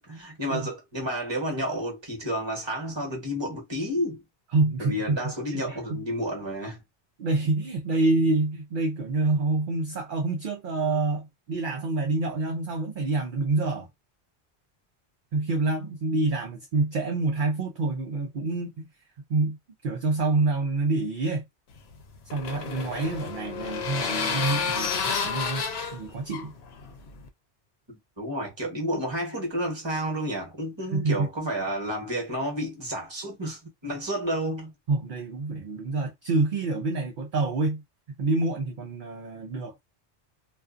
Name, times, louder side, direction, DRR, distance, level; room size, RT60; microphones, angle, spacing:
voice 1, 0.1-4.2 4.8-6.8 27.9-34.7, equal, 25° right, 1.1 m, -31 dB
voice 2, 4.5-5.2 5.5-6.0 7.2-13.9 15.3-18.9 19.3-19.6 19.8-21.4 22.3-25.6 25.9-26.5 30.9-31.3 34.9-37.8 38.2-39.8, right 3 dB, 55° right, 0.7 m, -27 dB
sound 1, 21.8-27.3, left 6 dB, 70° left, 0.9 m, -31 dB
2.4 x 2.3 x 2.4 m
omnidirectional pair, 1.1 m